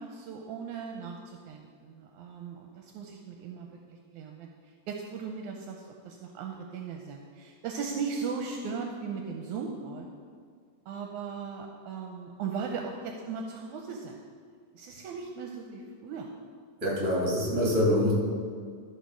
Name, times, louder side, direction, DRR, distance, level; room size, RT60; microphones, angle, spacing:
voice 1, 0.0-4.5 4.9-10.1 10.9-14.2 14.7-16.3 17.1-17.3, right 5 dB, 75° right, 2 dB, 2.0 m, -38 dB
voice 2, 16.8-18.1, left 1 dB, 30° right, -3 dB, 2.5 m, -25 dB
13.5 x 4.7 x 6.2 m, 2.1 s
omnidirectional pair, 3.6 m